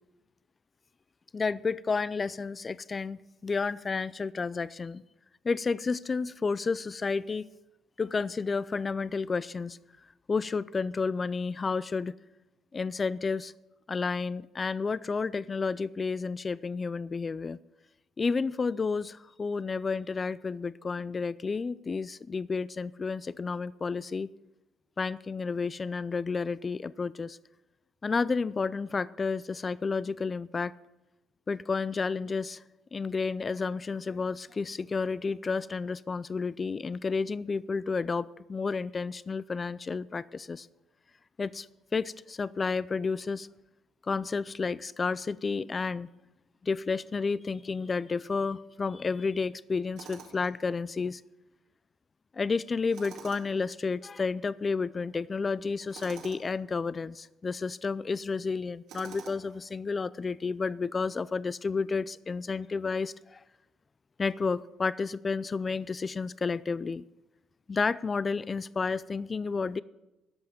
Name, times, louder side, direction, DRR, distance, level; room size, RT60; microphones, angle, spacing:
voice 1, 1.3-5.0 5.4-7.5 8.0-9.8 10.3-12.1 12.7-13.5 13.9-17.6 18.2-24.3 25.0-27.4 28.0-30.7 31.5-32.6 32.9-40.7 41.4-41.7 41.9-43.5 44.1-46.1 46.6-51.2 52.3-63.4 64.2-67.0 67.7-69.8, left 4 dB, 35° left, 19 dB, 0.4 m, -31 dB
Tools, 50.0-50.5 52.9-53.6 55.9-56.5 58.9-59.6, right 6 dB, 75° right, 2.2 m, -47 dB
13.0 x 5.7 x 8.8 m, 1.0 s
supercardioid pair, 70°, 0 cm